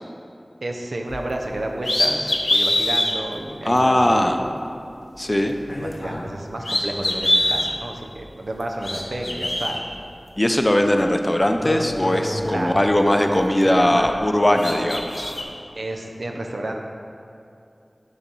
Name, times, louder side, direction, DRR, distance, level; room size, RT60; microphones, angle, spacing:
voice 1, 0.6-4.5 5.8-9.9 12.4-12.9 13.6-14.1 14.6-14.9 15.7-16.8, right 1 dB, 85° right, 2 dB, 0.6 m, -31 dB
sound 1, 1.1-1.3 1.8-3.1 3.8-3.9 5.6-6.3 6.6-7.7 8.6-9.8 10.9-11.0 11.4-13.1 13.4-14.3 14.5-15.4, left 1 dB, 65° left, 0.8 m, -24 dB
voice 2, 3.7-4.4 5.2-5.5 10.4-15.3, left 1 dB, 30° left, 5 dB, 0.5 m, -19 dB
6.8 x 4.0 x 6.1 m, 2.6 s
wide cardioid pair, 50°, 0 cm